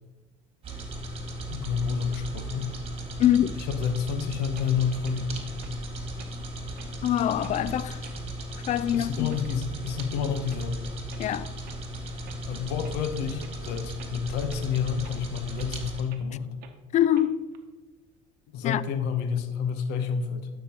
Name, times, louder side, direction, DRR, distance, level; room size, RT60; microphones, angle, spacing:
sound 1, 0.6-16.0, right 1 dB, 35° right, 1.9 m, -36 dB
voice 1, 1.5-2.7 3.6-5.5 8.9-10.8 12.5-16.5 18.5-20.5, left 7 dB, 75° left, 0.9 m, -29 dB
voice 2, 3.2-3.6 7.0-8.0 8.7-9.3 11.2-11.5 16.9-17.5 18.6-18.8, left 11 dB, 45° left, 0.4 m, -24 dB
sound 2, 4.5-4.7 5.0-5.2 5.6-5.7 6.2-6.4 6.8-6.9 7.4-7.6 8.0-8.2 8.7-8.8 9.3-9.6 10.0-10.1 10.5-10.6 11.1-11.2 11.6-11.8 12.2-12.4 12.8-13.0 13.4-13.6 14.0-14.1 14.5-14.6 15.0-15.2 15.6-15.7 16.1-16.2 16.6-16.8 17.1-17.6, right 8 dB, 60° right, 0.9 m, -50 dB
11.5 x 6.0 x 2.9 m
supercardioid pair, 80°, 17 cm